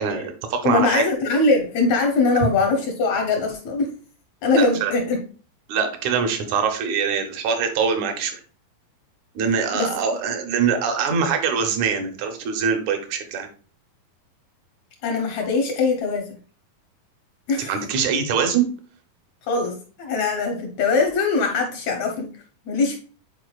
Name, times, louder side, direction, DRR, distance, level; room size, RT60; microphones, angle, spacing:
voice 1, 0.0-1.0 4.6-4.9 5.7-8.4 9.4-13.5 17.6-18.7, right 6 dB, 70° right, 6 dB, 1.9 m, -23 dB
voice 2, 0.6-3.9 4.4-5.2 9.7-9.9 15.0-16.4 17.5-17.7 19.5-22.3 22.6-23.0, left 3 dB, 75° left, 2 dB, 1.6 m, -22 dB
9.7 x 4.2 x 2.3 m, 0.40 s
omnidirectional pair, 4.1 m